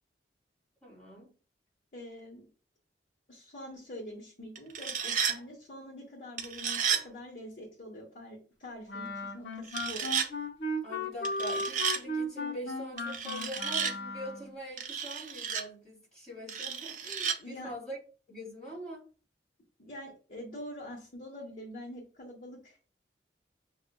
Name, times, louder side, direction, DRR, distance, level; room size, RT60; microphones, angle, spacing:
voice 1, 0.8-1.3 10.8-18.0 18.3-19.1, equal, 5° left, -6 dB, 2.0 m, -43 dB
voice 2, 1.9-2.5 3.3-10.1 17.4-17.7 19.8-22.9, left 1 dB, 50° left, -3 dB, 1.0 m, -45 dB
sound 1, 4.6-5.4 6.4-7.0 9.7-10.3 11.2-12.0 13.0-13.9 14.8-15.6 16.5-17.4, right 7 dB, 45° right, 0.5 m, -32 dB
Wind instrument woodwind instrument, 8.9-14.5, left 1 dB, 85° left, 0.8 m, -36 dB
6.1 x 2.4 x 2.2 m, 0.37 s
head